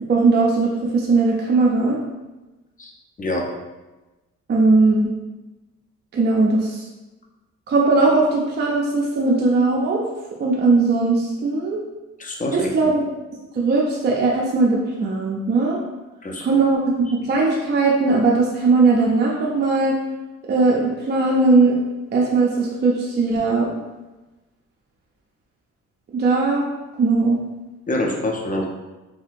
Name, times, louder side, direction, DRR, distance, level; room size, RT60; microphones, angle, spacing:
voice 1, 0.1-2.0 4.5-5.1 6.1-6.9 7.7-10.0 10.4-11.8 12.5-13.0 13.5-15.8 16.4-20.0 20.5-21.8 22.1-23.8 26.1-26.7 27.0-27.4, right 3 dB, 35° right, -3 dB, 0.5 m, -19 dB
voice 2, 3.2-3.5 12.2-12.7 16.2-16.5 27.9-28.7, left 1 dB, 25° left, 0 dB, 0.6 m, -25 dB
3.4 x 2.7 x 2.5 m, 1.1 s
cardioid pair, 90°, 30 cm